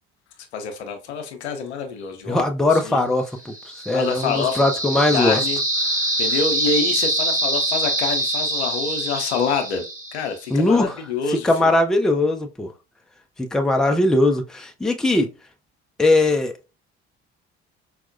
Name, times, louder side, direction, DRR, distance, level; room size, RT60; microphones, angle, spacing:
voice 1, 0.5-2.4 2.7-3.0 3.9-4.6 5.1-5.6 6.2-9.8 10.1-11.7, left 5 dB, 80° left, 0.6 m, -26 dB
voice 2, 2.3-3.5 3.9-5.5 10.5-11.0 11.3-12.7 13.4-15.3 16.0-16.5, left 2 dB, ahead, 0.4 m, -20 dB
sound 1, 3.5-10.4, right 1 dB, 25° right, 1.0 m, -24 dB
4.5 x 2.1 x 2.5 m
figure-of-eight pair, 50°, 33 cm